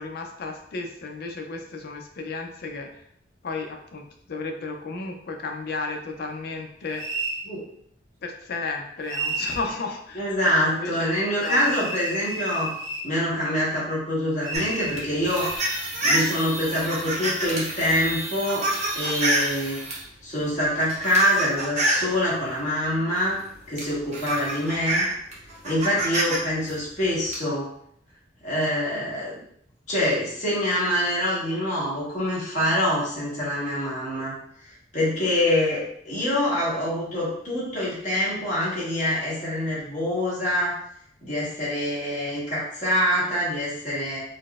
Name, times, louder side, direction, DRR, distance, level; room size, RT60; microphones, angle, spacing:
voice 1, 0.0-3.0 3.4-7.0 8.2-11.8, left 3 dB, 55° left, 3 dB, 0.4 m, -33 dB
sound 1, 6.9-7.4 9.1-9.6 11.4-13.1 14.4-15.8, right 1 dB, 70° right, 0.9 m, -32 dB
voice 2, 10.1-12.7 13.0-15.5 16.0-18.7 18.9-19.8 20.2-23.4 23.7-25.0 25.6-27.6 28.4-29.4 29.9-34.3 34.9-40.8 41.2-44.2, left 1 dB, 40° left, -8 dB, 1.3 m, -25 dB
sound 2, 14.5-20.0 20.7-22.1 23.3-23.4 23.8-26.4 26.7-27.3, right 1 dB, 40° right, 0.7 m, -27 dB
4.1 x 2.0 x 2.3 m, 0.70 s
head